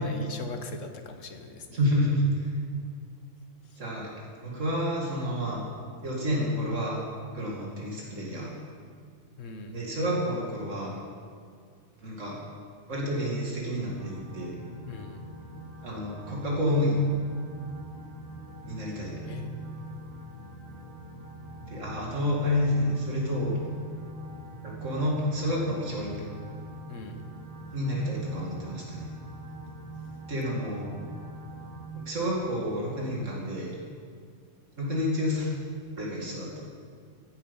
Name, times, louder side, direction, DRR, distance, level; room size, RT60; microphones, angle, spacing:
voice 1, 0.0-1.8 9.4-9.8 14.9-15.2 19.2-19.6 26.9-27.2, left 3 dB, 90° left, 7 dB, 1.5 m, -40 dB
voice 2, 1.7-2.6 3.8-4.1 4.4-5.7 6.0-7.0 7.3-8.5 9.7-10.9 12.0-12.4 12.9-14.5 15.8-17.0 18.7-19.1 21.7-23.6 24.0-24.1 24.6-26.2 27.7-29.1 30.3-30.9 31.9-33.7 34.8-35.6 36.0-36.6, left 1 dB, 90° right, -3 dB, 2.7 m, -29 dB
sound 1, 14.0-31.9, right 2 dB, 15° left, 2.8 m, -43 dB
15.0 x 10.0 x 5.4 m, 2.2 s
omnidirectional pair, 1.3 m